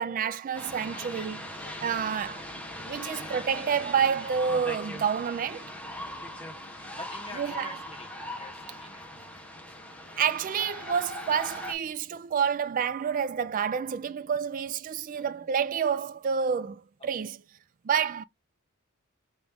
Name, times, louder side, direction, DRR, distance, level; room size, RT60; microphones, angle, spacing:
voice 1, 0.0-1.4 1.8-2.5 2.9-5.7 7.4-7.7 10.2-17.4 17.9-18.2, right 7 dB, 40° right, 0.3 m, -29 dB
sound 1, 0.5-11.7, left 1 dB, 5° left, 1.1 m, -40 dB
voice 2, 2.9-3.4 6.0-6.4 6.9-9.1 15.1-15.5 17.0-17.3, left 2 dB, 25° left, 1.4 m, -48 dB
5.1 x 2.9 x 3.5 m
head